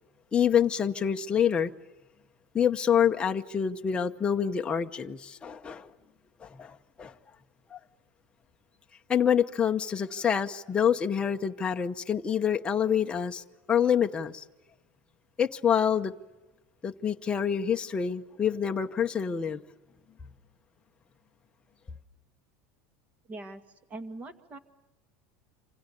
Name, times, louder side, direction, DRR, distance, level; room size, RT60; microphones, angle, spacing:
voice 1, 0.3-1.7 2.5-5.9 6.4-7.1 7.7-7.8 9.1-14.4 15.4-16.1 16.8-19.6, left 8 dB, 15° left, 0.9 m, -27 dB
voice 2, 23.3-23.6 23.9-24.6, right 2 dB, 20° right, 2.0 m, -41 dB
27.5 x 25.5 x 6.8 m
supercardioid pair, 160°, 7 cm